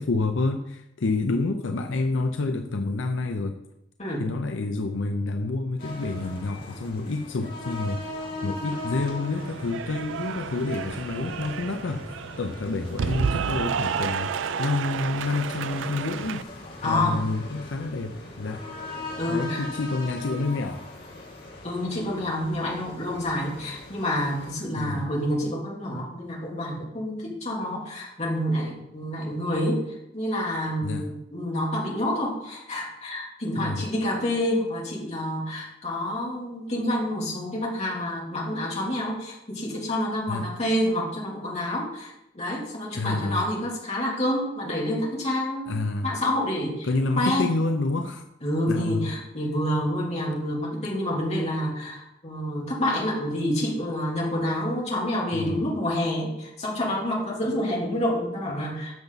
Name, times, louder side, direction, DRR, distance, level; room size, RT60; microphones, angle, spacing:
voice 1, 0.0-3.6 4.2-16.5 16.8-18.6 19.3-20.9 24.8-25.1 30.8-31.1 33.5-33.9 40.3-40.5 43.0-43.4 45.7-46.1 46.9-48.2 48.7-49.1 55.3-55.7, left 3 dB, 80° left, 6 dB, 0.6 m, -28 dB
sound 1, 5.8-24.5, left 2 dB, 55° left, 2.8 m, -40 dB
Cheering / Applause, 8.7-16.4, right 6 dB, 80° right, 0.4 m, -31 dB
voice 2, 16.8-17.2 19.2-19.6 21.6-29.8 30.1-46.9 47.2-47.5 48.4-58.9, left 1 dB, 35° left, -4 dB, 3.2 m, -28 dB
12.5 x 7.1 x 4.1 m, 0.88 s
head